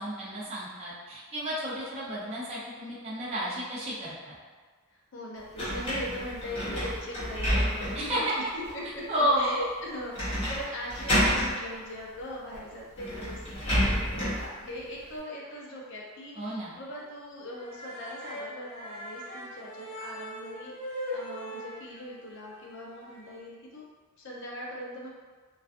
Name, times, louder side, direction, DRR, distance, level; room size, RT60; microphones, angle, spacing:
voice 1, 0.0-4.4 8.0-8.3 9.1-9.6 16.4-16.7, equal, 30° right, -8 dB, 0.5 m, -31 dB
voice 2, 4.9-8.3 8.5-23.8 24.2-25.1, left 1 dB, 55° left, -3 dB, 0.5 m, -40 dB
sound 1, 5.6-8.1 8.6-8.7 10.1-10.6 10.9-11.5 12.5-12.6 13.0-14.5, equal, 25° left, 0.8 m, -28 dB
sound 2, 15.0-15.6 15.9-16.0 16.4-16.5 16.9-17.1 17.4-23.4, equal, 90° left, 0.9 m, -41 dB
2.3 x 2.3 x 2.4 m, 1.4 s
head